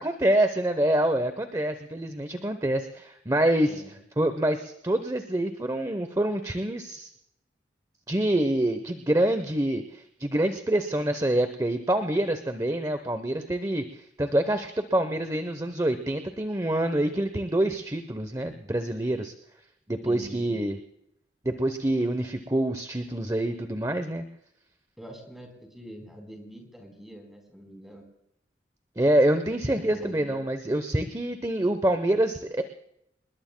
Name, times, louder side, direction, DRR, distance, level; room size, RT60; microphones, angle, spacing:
voice 1, 0.0-3.8 4.2-7.1 8.1-13.8 14.2-19.3 19.9-20.8 21.4-24.2 29.0-32.6, right 1 dB, 20° right, 9 dB, 0.8 m, -26 dB
voice 2, 20.0-20.7 25.0-28.0 29.7-30.4, equal, ahead, 2 dB, 3.9 m, -44 dB
27.5 x 21.0 x 2.2 m, 0.78 s
head